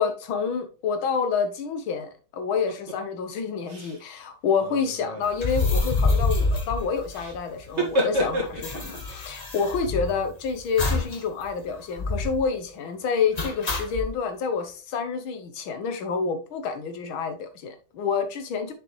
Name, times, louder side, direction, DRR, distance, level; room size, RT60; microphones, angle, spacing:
voice 1, 0.0-18.7, left 5 dB, 80° left, 1.9 m, -28 dB
sound 1, 2.7-3.0 3.7-4.0 4.5-5.3 7.1-7.4 7.6-9.0, equal, 35° right, 1.9 m, -29 dB
sound 2, 5.3-7.6 7.9-8.0 8.2-10.3 10.8-11.2 11.5-11.6 12.0-12.4 13.4-14.1, left 3 dB, 30° left, 0.8 m, -26 dB
6.8 x 5.9 x 3.0 m
omnidirectional pair, 2.2 m